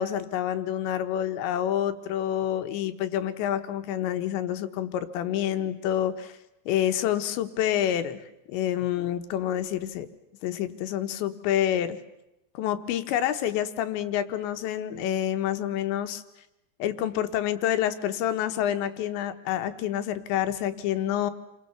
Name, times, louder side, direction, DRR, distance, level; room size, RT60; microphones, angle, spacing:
voice 1, 0.0-6.3 6.7-8.2 8.5-10.1 10.4-12.0 12.6-16.2 16.8-21.3, left 11 dB, 90° left, 9 dB, 3.5 m, -28 dB
29.0 x 23.0 x 7.0 m, 0.89 s
omnidirectional pair, 5.0 m